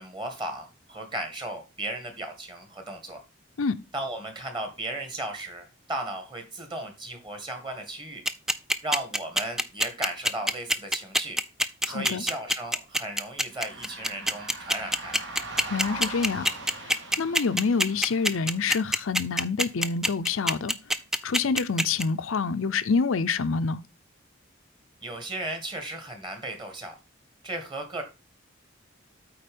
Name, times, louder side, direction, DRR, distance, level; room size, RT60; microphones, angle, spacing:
voice 1, 0.0-3.2 3.9-8.2 8.8-11.4 11.8-15.2 25.0-27.0 27.4-28.0, right 1 dB, 25° right, 1.9 m, -35 dB
sound 1, 8.3-22.0, equal, ahead, 0.4 m, -24 dB
voice 2, 11.9-12.2 15.7-16.5 16.8-20.7 21.2-23.8, left 5 dB, 85° left, 0.6 m, -27 dB
sound 2, 13.5-18.7, right 2 dB, 60° right, 2.0 m, -40 dB
8.7 x 4.2 x 5.2 m
head